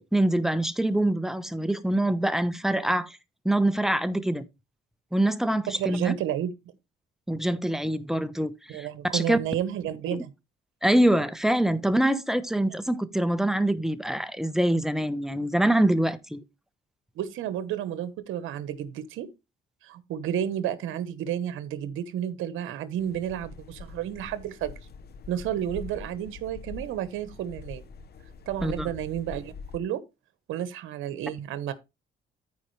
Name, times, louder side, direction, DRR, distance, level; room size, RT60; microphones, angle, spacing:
voice 1, 0.0-3.2 3.4-4.5 5.1-6.1 7.3-8.9 9.1-9.4 10.1-10.2 10.8-16.4 28.6-28.9, right 1 dB, ahead, 1.0 m, -25 dB
voice 2, 5.7-6.5 8.7-10.3 17.2-19.3 19.8-24.7 25.3-27.8 28.5-30.0 30.5-31.7, right 10 dB, 85° right, 1.1 m, -31 dB
sound 1, 23.0-29.8, left 4 dB, 55° left, 1.0 m, -43 dB
14.0 x 4.8 x 3.2 m
cardioid pair, 90°, 20 cm